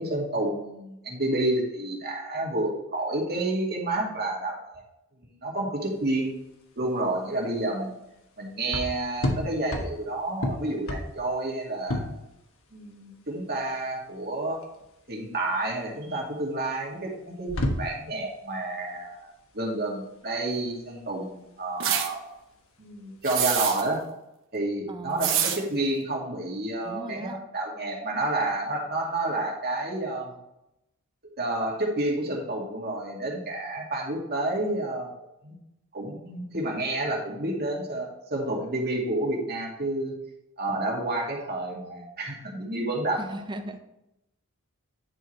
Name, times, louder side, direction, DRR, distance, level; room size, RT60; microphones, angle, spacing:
voice 1, 0.0-4.8 5.4-6.4 6.8-7.9 8.4-12.0 12.7-14.6 15.1-19.3 19.5-22.2 22.8-24.0 24.5-30.3 31.4-35.1 35.4-35.5 35.9-40.1 40.6-43.3, right 2 dB, 45° right, -1 dB, 2.2 m, -30 dB
sound 1, 5.8-24.0, left 1 dB, 65° left, 1.3 m, -35 dB
sound 2, 21.8-22.1 23.2-23.9 25.2-25.6, right 9 dB, 60° right, 1.1 m, -25 dB
voice 2, 24.9-25.4 26.8-27.4 43.2-43.8, right 1 dB, 20° right, 8 dB, 0.7 m, -38 dB
9.9 x 4.7 x 4.6 m, 0.86 s
head